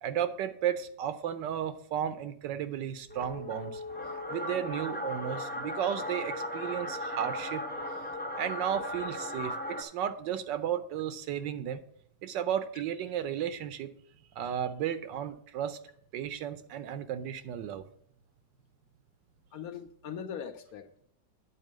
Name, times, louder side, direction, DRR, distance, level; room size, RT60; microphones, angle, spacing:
voice 1, 0.0-3.8 4.3-7.6 8.3-11.8 12.2-13.9 14.4-15.8 16.1-17.8, right 9 dB, 85° right, 1.4 m, -34 dB
sound 1, 3.1-9.8, left 1 dB, 10° left, 0.4 m, -37 dB
voice 2, 19.5-21.1, left 8 dB, 70° left, 1.0 m, -41 dB
9.4 x 4.2 x 7.3 m
omnidirectional pair, 1.9 m